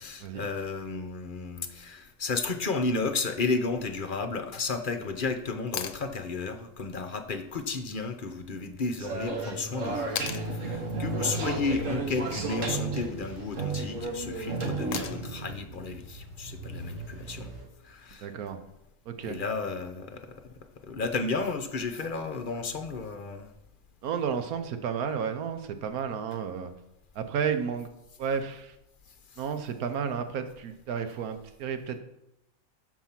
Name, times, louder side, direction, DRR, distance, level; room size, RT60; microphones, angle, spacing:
voice 1, 0.0-17.5 17.8-18.3 19.2-20.4 20.8-23.5 29.3-29.4, left 3 dB, 45° left, 8 dB, 0.9 m, -33 dB
sound 1, 5.7-6.0 8.3-8.4 10.2-10.5 12.5-12.9 14.9-15.4 17.5-17.6, left 9 dB, 65° left, 1.0 m, -36 dB
sound 2, 9.0-15.6, right 3 dB, 60° right, 1.8 m, -33 dB
sound 3, 11.2-17.6, right 1 dB, 20° right, 4.4 m, -43 dB
voice 2, 18.2-18.6 19.1-19.4 24.0-26.7 27.1-27.9 28.2-28.8 29.4-32.0, right 7 dB, 85° right, 8 dB, 1.3 m, -32 dB
12.5 x 4.8 x 5.8 m, 0.86 s
omnidirectional pair, 1.5 m